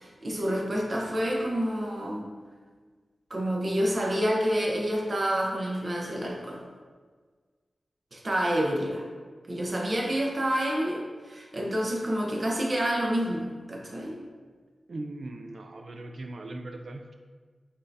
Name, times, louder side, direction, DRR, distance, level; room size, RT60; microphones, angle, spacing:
voice 1, 0.0-2.3 3.3-6.6 8.1-9.1 9.5-14.2, equal, 40° right, -1 dB, 0.7 m, -28 dB
voice 2, 14.9-17.1, right 2 dB, 55° right, 5 dB, 0.3 m, -39 dB
5.4 x 3.4 x 2.6 m, 1.5 s
wide cardioid pair, 120°, 0 cm